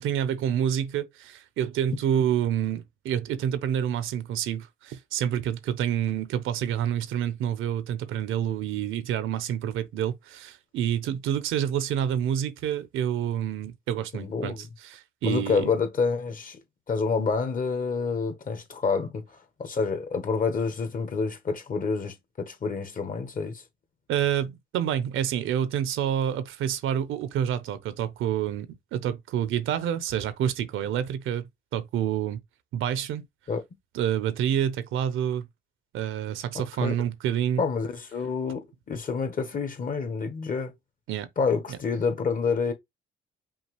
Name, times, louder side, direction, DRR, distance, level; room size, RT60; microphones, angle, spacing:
voice 1, 0.0-15.7 24.1-31.4 31.7-32.4 32.7-33.2 33.9-35.5 35.9-37.6 41.1-41.3 41.7-41.8, right 10 dB, 85° right, 0.8 m, -28 dB
voice 2, 14.1-14.7 15.2-16.6 16.9-19.2 19.6-23.6 33.5-33.6 36.5-36.9 37.6-40.7 41.4-42.7, left 5 dB, 45° left, 1.3 m, -28 dB
5.6 x 2.5 x 3.2 m
cardioid pair, 90°, 20 cm